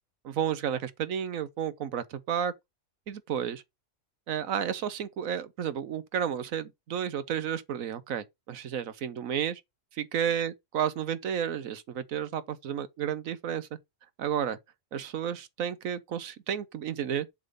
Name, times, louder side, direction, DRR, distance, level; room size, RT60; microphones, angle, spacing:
voice 1, 0.2-2.5 3.1-3.6 4.3-9.6 9.9-13.7 14.2-14.6 14.9-17.3, right 8 dB, 75° right, 1.2 m, -32 dB
7.3 x 3.8 x 5.2 m
omnidirectional pair, 1.5 m